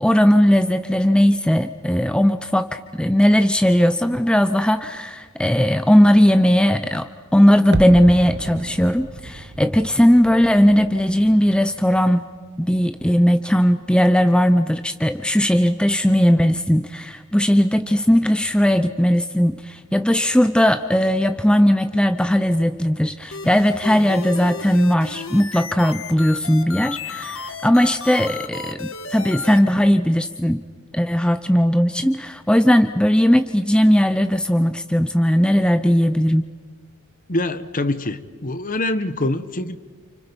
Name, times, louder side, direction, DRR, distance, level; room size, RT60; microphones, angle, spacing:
voice 1, 0.0-12.3 12.6-30.6 30.9-36.5, equal, 5° left, 9 dB, 0.6 m, -18 dB
sound 1, 7.7-12.7 12.9-13.0, right 2 dB, 50° right, 0.8 m, -33 dB
sound 2, 23.3-29.6, left 4 dB, 65° left, 1.6 m, -33 dB
voice 2, 37.3-39.8, left 2 dB, 40° left, 12 dB, 1.2 m, -24 dB
30.0 x 29.0 x 5.3 m, 1.5 s
head